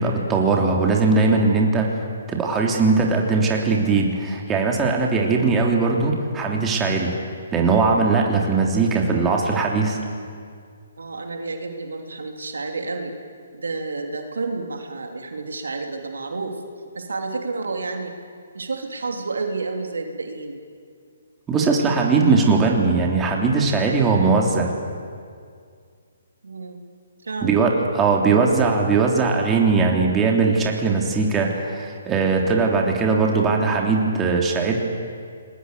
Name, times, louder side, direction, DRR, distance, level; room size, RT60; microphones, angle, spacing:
voice 1, 0.0-1.9 2.3-7.1 7.5-10.0 21.5-24.7 27.4-34.8, right 4 dB, 15° right, 0 dB, 3.2 m, -20 dB
voice 2, 11.0-13.2 13.5-16.5 16.9-18.1 18.5-20.6 26.4-26.8 27.2-27.6, right 3 dB, 80° right, 4 dB, 3.1 m, -30 dB
28.5 x 21.0 x 8.3 m, 2.2 s
hypercardioid pair, 145°, 0 cm